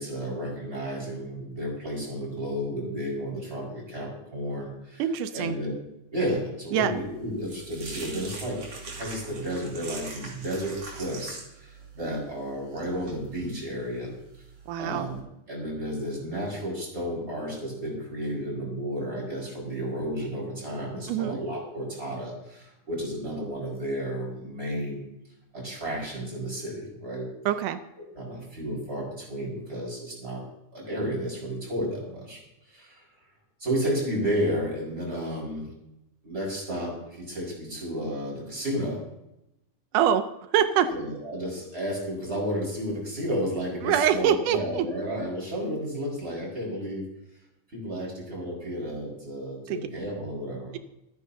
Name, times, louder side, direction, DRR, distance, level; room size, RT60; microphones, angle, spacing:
voice 1, 0.0-5.1 5.3-5.7 6.1-8.6 8.9-14.1 14.8-15.2 15.5-25.0 25.5-27.3 28.1-30.4 30.7-32.4 32.7-33.1 33.6-35.7 36.2-39.0 40.9-47.0 47.7-50.7, equal, 20° right, -3 dB, 5.4 m, -32 dB
voice 2, 5.0-5.6 6.7-6.9 14.7-15.1 21.1-21.4 27.5-27.8 39.9-40.2 40.5-40.9 43.8-44.9 49.7-49.8, right 9 dB, 90° right, 9 dB, 2.3 m, -24 dB
sound 1, 6.9-15.2, right 4 dB, 55° right, 3.7 m, -43 dB
28.0 x 9.5 x 2.8 m, 0.88 s
omnidirectional pair, 3.5 m